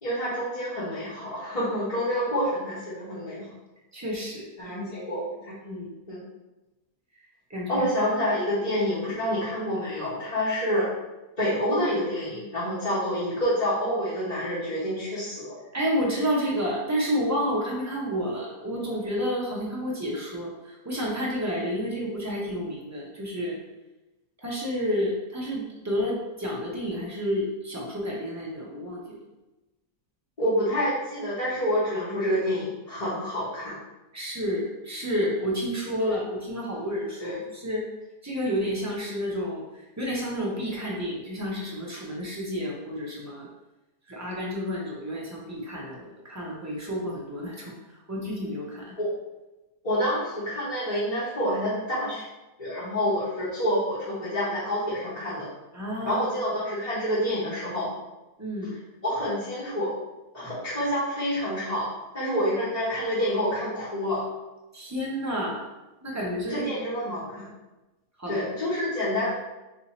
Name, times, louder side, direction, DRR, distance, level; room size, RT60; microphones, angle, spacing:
voice 1, 0.0-3.5 4.6-5.6 6.1-6.2 7.7-10.9 11.4-15.6 30.4-33.8 36.0-36.1 37.2-37.4 49.0-49.1 49.8-52.2 52.6-55.5 56.0-57.9 59.0-59.9 60.3-61.9 62.1-64.2 66.5-67.5 68.3-69.3, equal, 30° left, -12 dB, 1.1 m, -28 dB
voice 2, 3.9-4.4 5.6-5.9 7.5-7.9 15.7-23.6 24.4-29.2 34.1-37.3 37.6-37.9 38.2-39.6 40.0-43.5 44.1-47.7 48.1-48.9 52.8-52.9 55.7-56.2 58.4-58.7 64.7-65.6 66.0-66.7 68.2-68.4, equal, 20° right, -4 dB, 0.4 m, -30 dB
3.3 x 2.7 x 4.1 m, 1.0 s
omnidirectional pair, 1.6 m